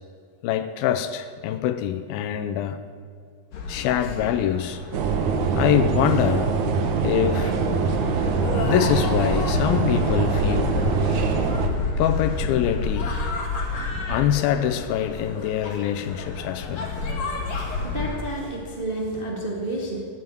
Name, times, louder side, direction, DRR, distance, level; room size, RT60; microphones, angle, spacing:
voice 1, 0.4-2.8 3.7-4.8 5.6-6.6 7.0-7.6 8.6-10.7 12.0-13.1 14.1-16.9, left 10 dB, 80° left, 10 dB, 2.4 m, -24 dB
sound 1, 3.5-18.2, left 3 dB, 45° left, 3.0 m, -30 dB
sound 2, 4.9-11.7, right 5 dB, 65° right, 2.0 m, -23 dB
voice 2, 17.6-20.0, right 1 dB, 30° right, -2 dB, 1.0 m, -30 dB
14.5 x 9.3 x 9.4 m, 2.1 s
omnidirectional pair, 4.5 m